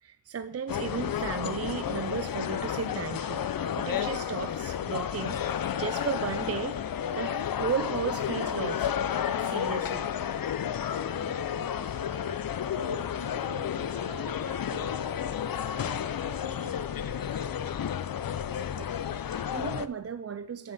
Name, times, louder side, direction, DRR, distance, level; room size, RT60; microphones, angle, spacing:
voice 1, 0.0-3.5 3.8-5.4 5.8-6.8 7.1-8.9 9.3-10.1 10.9-11.0 14.1-14.2 18.8-20.7, right 6 dB, 40° right, 11 dB, 0.4 m, -35 dB
sound 1, 0.7-19.9, left 9 dB, 60° left, 0.6 m, -31 dB
voice 2, 10.9-12.4 12.7-15.4 15.7-17.8, right 3 dB, 60° right, 1 dB, 2.8 m, -48 dB
13.0 x 7.3 x 4.1 m, 0.75 s
wide cardioid pair, 90°, 41 cm